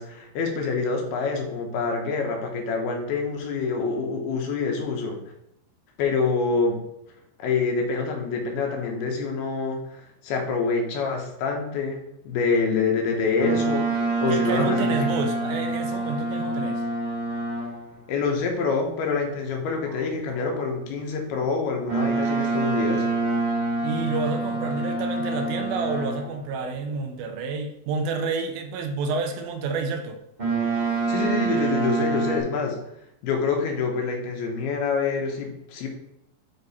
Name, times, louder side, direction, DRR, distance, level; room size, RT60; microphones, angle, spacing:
voice 1, 0.0-5.2 6.0-6.8 7.4-15.1 18.1-23.1 31.1-32.8 33.2-35.9, left 4 dB, 85° left, 2 dB, 3.1 m, -26 dB
Boat Water vehicle, 13.4-17.9 21.9-26.4 30.4-32.4, right 3 dB, 50° right, 0.5 m, -26 dB
voice 2, 14.3-16.8 19.9-20.5 23.8-30.2, right 4 dB, 80° right, 6 dB, 2.4 m, -29 dB
8.9 x 3.9 x 4.2 m, 0.80 s
omnidirectional pair, 4.5 m